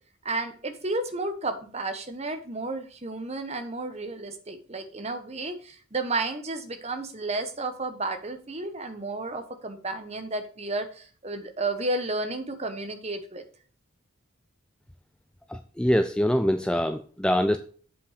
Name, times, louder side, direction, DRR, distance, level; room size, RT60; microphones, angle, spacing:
voice 1, 0.2-13.4, right 2 dB, 30° right, 8 dB, 1.1 m, -32 dB
voice 2, 15.5-17.6, equal, 5° left, 8 dB, 0.3 m, -24 dB
7.6 x 5.6 x 5.0 m, 0.42 s
head